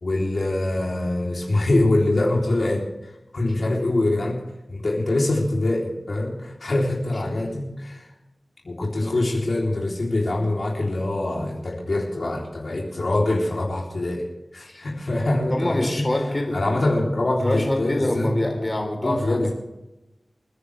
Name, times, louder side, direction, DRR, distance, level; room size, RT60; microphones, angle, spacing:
voice 1, 0.0-4.4 4.7-8.1 8.6-14.3 14.5-16.0 16.5-18.3 19.0-19.5, left 2 dB, 70° left, -2 dB, 3.5 m, -24 dB
voice 2, 15.5-16.6 17.4-19.5, left 1 dB, 35° left, 2 dB, 3.9 m, -26 dB
28.0 x 10.0 x 3.5 m, 0.96 s
wide cardioid pair, 55°, 0 cm